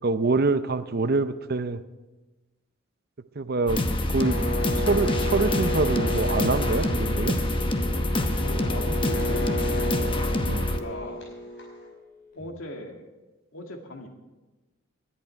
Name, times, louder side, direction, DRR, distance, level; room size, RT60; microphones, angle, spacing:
voice 1, 0.0-1.8 3.4-3.8 4.1-7.4 10.4-10.7, right 3 dB, 50° right, 12 dB, 0.6 m, -26 dB
sound 1, 3.7-10.8, left 1 dB, 25° left, 1.0 m, -26 dB
sound 2, 4.1-11.9, equal, 60° left, 4.9 m, -32 dB
voice 2, 8.4-10.1 10.7-11.2 12.3-13.0 13.5-14.1, left 1 dB, 80° left, 3 dB, 2.2 m, -38 dB
Telephone, 12.4-12.7, left 4 dB, 40° left, 5.5 m, -54 dB
19.5 x 11.0 x 4.6 m, 1.1 s
head